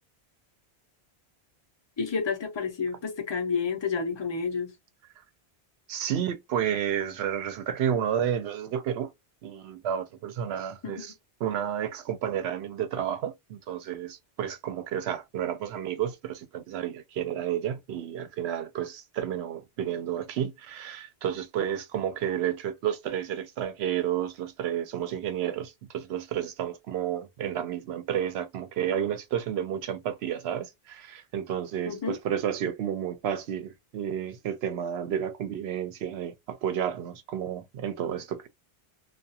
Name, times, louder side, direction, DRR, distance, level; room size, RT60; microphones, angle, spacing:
voice 1, 2.0-4.7 10.8-11.1 31.9-32.2, left 5 dB, 30° left, 0.5 m, -30 dB
voice 2, 5.9-9.1 9.4-11.1 11.4-38.5, right 9 dB, 75° right, 0.8 m, -31 dB
2.3 x 2.3 x 2.7 m
omnidirectional pair, 1.1 m